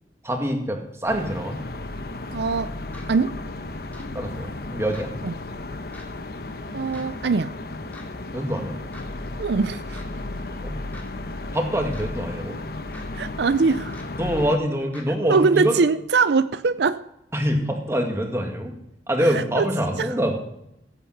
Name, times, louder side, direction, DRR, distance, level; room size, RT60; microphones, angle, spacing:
voice 1, 0.2-1.6 4.1-5.1 8.3-8.8 10.6-10.8 11.5-12.6 14.2-15.8 17.3-18.7 19.1-20.4, equal, 15° right, 2.0 m, -25 dB
sound 1, 1.1-14.6, left 2 dB, 55° left, 1.0 m, -34 dB
voice 2, 2.3-2.7 3.1-3.4 5.2-5.3 6.7-7.6 9.4-10.0 13.2-14.0 15.2-17.0 19.3-19.6, right 4 dB, 75° right, 0.5 m, -22 dB
sound 2, 2.9-3.0 3.9-4.0 4.9-5.1 5.9-6.1 6.9-7.0 7.9-8.1 8.9-9.1 9.9-10.0 10.9-11.0 11.9-12.1 12.9-13.0 13.9-14.0 14.9-15.0, left 1 dB, 10° left, 2.7 m, -44 dB
16.5 x 9.0 x 5.9 m
head